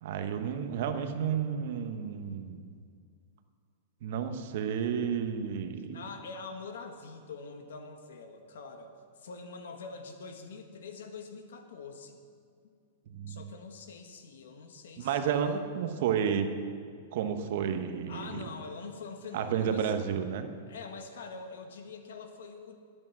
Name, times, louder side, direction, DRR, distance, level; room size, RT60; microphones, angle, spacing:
voice 1, 0.0-2.8 4.0-6.0 13.1-13.5 15.0-16.5 17.1-18.4 19.3-20.5, right 7 dB, 50° right, 7 dB, 1.0 m, -31 dB
voice 2, 5.9-12.2 13.3-15.6 18.1-19.9 20.7-22.8, left 4 dB, 80° left, 6 dB, 1.5 m, -44 dB
11.0 x 8.7 x 7.2 m, 2.2 s
supercardioid pair, 165°, 0 cm